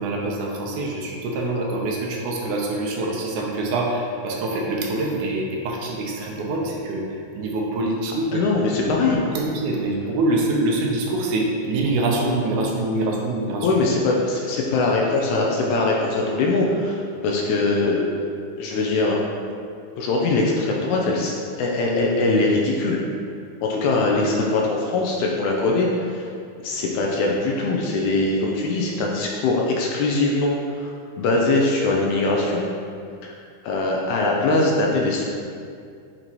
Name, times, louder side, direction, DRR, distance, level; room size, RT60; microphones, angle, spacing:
voice 1, 0.0-8.5 8.8-9.0 9.3-13.7 17.2-17.3, right 2 dB, 75° right, -1 dB, 2.1 m, -25 dB
voice 2, 8.3-9.2 13.6-18.0 18.6-19.2 20.0-23.0 23.6-26.3 26.6-30.9 31.2-32.7 33.2-33.3 33.6-35.2, left 2 dB, 80° left, -2 dB, 1.9 m, -22 dB
7.7 x 4.6 x 2.9 m, 2.3 s
omnidirectional pair, 3.7 m